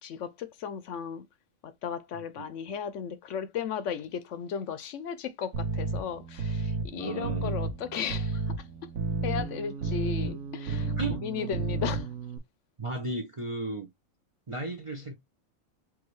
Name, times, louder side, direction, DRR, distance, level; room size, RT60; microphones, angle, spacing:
voice 1, 0.0-1.3 1.6-8.9 9.2-12.1, left 7 dB, 70° left, 0.9 m, -36 dB
sound 1, 5.5-12.4, right 4 dB, 85° right, 1.2 m, -32 dB
voice 2, 6.9-7.5 11.0-11.5 12.8-13.9 14.5-15.1, right 2 dB, 35° right, 0.5 m, -34 dB
4.7 x 2.7 x 3.0 m
omnidirectional pair, 1.4 m